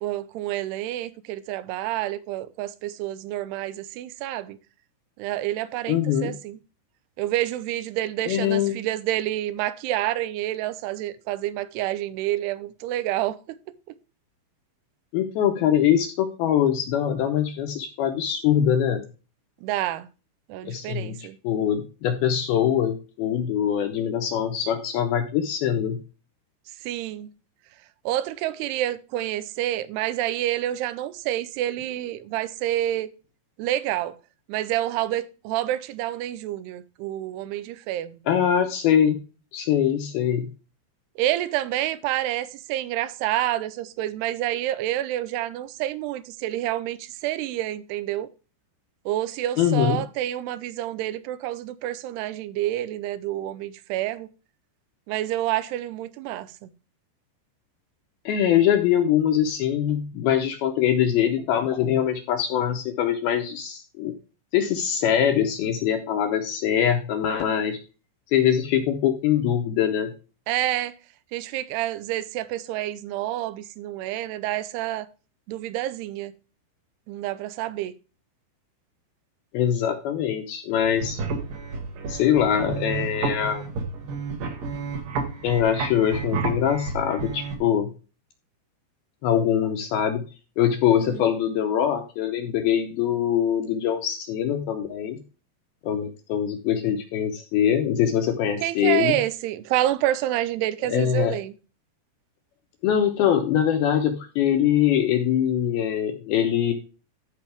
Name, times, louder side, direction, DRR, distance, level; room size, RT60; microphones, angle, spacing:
voice 1, 0.0-4.6 5.2-6.6 7.2-13.6 19.6-20.1 20.5-21.4 26.8-27.3 28.1-33.1 33.6-34.2 34.5-38.2 41.2-48.3 49.1-54.3 55.1-56.7 70.5-71.0 71.3-75.1 75.5-76.3 77.1-77.9 90.9-91.3 98.6-101.5, right 14 dB, 80° right, 2.5 m, -28 dB
voice 2, 5.9-6.3 8.3-8.8 15.1-19.0 20.6-26.0 38.3-39.2 39.5-40.4 49.6-50.0 58.3-64.1 64.5-67.8 68.3-70.1 79.5-81.2 82.1-83.7 85.4-87.9 89.2-90.2 90.6-95.2 95.8-99.2 100.9-101.4 102.8-106.7, left 9 dB, 75° left, 2.4 m, -23 dB
sound 1, 80.8-87.5, right 4 dB, 60° right, 2.7 m, -31 dB
13.5 x 5.2 x 3.4 m
omnidirectional pair, 5.2 m